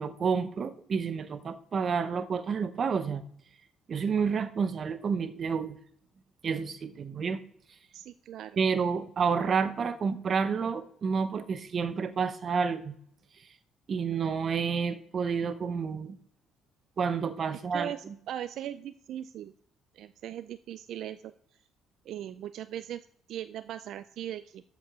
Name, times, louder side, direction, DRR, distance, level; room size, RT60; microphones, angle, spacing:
voice 1, 0.0-3.2 3.9-5.8 6.4-7.4 8.6-12.9 13.9-16.2 17.0-18.1, right 6 dB, 40° right, 13 dB, 0.8 m, -29 dB
voice 2, 7.9-8.6 17.7-19.5 19.9-21.3 22.1-24.6, right 11 dB, 65° right, 13 dB, 0.4 m, -39 dB
13.0 x 5.2 x 6.1 m, 0.67 s
cardioid pair, 135°, 0 cm